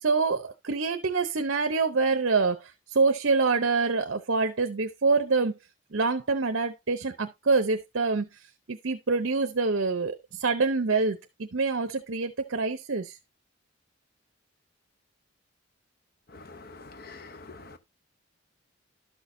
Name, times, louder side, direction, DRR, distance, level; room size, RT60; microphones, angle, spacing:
voice 1, 0.0-5.6 5.9-8.4 8.7-13.2, right 4 dB, 65° right, 0.7 m, -26 dB
voice 2, 16.3-17.8, left 3 dB, 45° left, 0.7 m, -46 dB
12.0 x 6.3 x 2.6 m
head